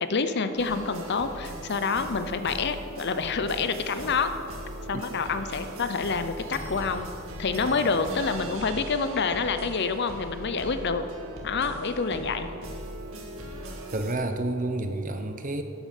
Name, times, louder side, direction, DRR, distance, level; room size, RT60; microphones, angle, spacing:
voice 1, 0.0-4.3 4.9-7.1 7.4-11.0 11.4-12.5, left 4 dB, 50° left, 9 dB, 0.6 m, -27 dB
sound 1, 0.6-14.1, right 1 dB, 70° right, 1.9 m, -39 dB
voice 2, 13.9-15.6, right 2 dB, 35° right, 7 dB, 0.9 m, -29 dB
11.5 x 8.7 x 6.6 m, 2.6 s
head